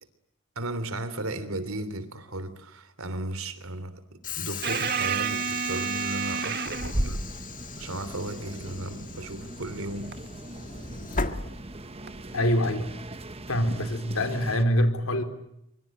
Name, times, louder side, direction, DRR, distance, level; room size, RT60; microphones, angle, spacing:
voice 1, 0.5-4.0 4.4-7.2 7.8-10.2, right 1 dB, 80° right, 3.2 m, -35 dB
Train / Sliding door, 4.2-12.2, left 4 dB, 40° left, 1.8 m, -38 dB
sound 1, 4.6-7.1 10.1-10.3 12.1-12.2, right 7 dB, 50° right, 1.9 m, -30 dB
sound 2, 6.6-14.6, right 1 dB, 30° right, 1.4 m, -37 dB
voice 2, 12.3-12.9 13.5-15.2, equal, 80° left, 4.0 m, -24 dB
24.5 x 24.0 x 9.0 m
head